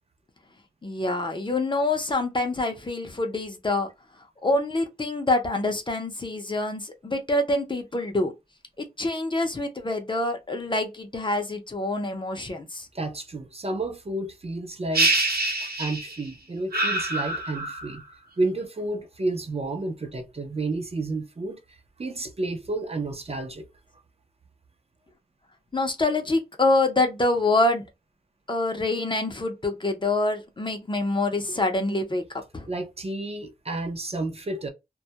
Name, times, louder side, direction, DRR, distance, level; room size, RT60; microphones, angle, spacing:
voice 1, 0.8-3.9 4.4-8.3 8.8-12.9 25.7-27.8 28.5-32.2 32.5-32.7, left 2 dB, 30° left, 0.5 m, -26 dB
voice 2, 12.9-15.1 15.6-18.0 18.4-23.7 32.7-34.7, right 2 dB, 40° right, 0.5 m, -31 dB
sound 1, 14.9-16.3 16.7-18.0, right 2 dB, 75° right, 0.7 m, -25 dB
2.2 x 2.0 x 2.7 m
wide cardioid pair, 95°, 16 cm